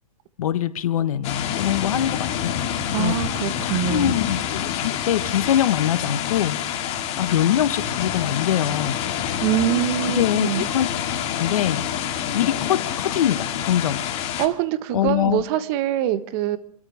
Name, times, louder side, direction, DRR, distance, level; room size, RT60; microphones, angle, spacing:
voice 1, 0.4-3.1 3.6-6.6 7.2-9.0 10.0-10.9 11.3-11.9 12.3-14.0 14.9-15.4, left 11 dB, 70° left, 1.2 m, -23 dB
sound 1, 1.2-14.5, left 9 dB, 35° left, 2.5 m, -27 dB
voice 2, 2.9-4.2 9.4-10.7 14.4-16.6, right 12 dB, 45° right, 1.4 m, -24 dB
26.0 x 13.0 x 3.6 m
hypercardioid pair, 130°, 19 cm